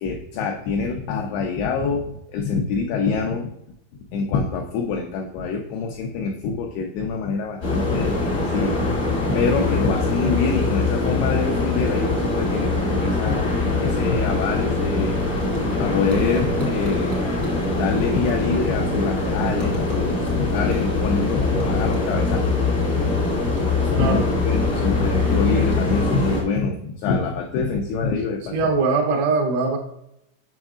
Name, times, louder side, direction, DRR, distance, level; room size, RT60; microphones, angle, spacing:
voice 1, 0.0-2.0 2.3-3.5 4.1-8.9 9.2-13.4 13.8-15.2 15.8-17.2 17.7-22.5 23.1-23.2 23.8-28.7, left 5 dB, 90° left, 2 dB, 2.3 m, -25 dB
sound 1, 7.6-26.4, left 3 dB, 55° left, 0.9 m, -23 dB
sound 2, 14.4-23.9, right 1 dB, 10° right, 0.6 m, -42 dB
voice 2, 28.5-29.8, right 4 dB, 80° right, 1 dB, 3.4 m, -21 dB
7.6 x 6.3 x 2.4 m, 0.80 s
omnidirectional pair, 5.4 m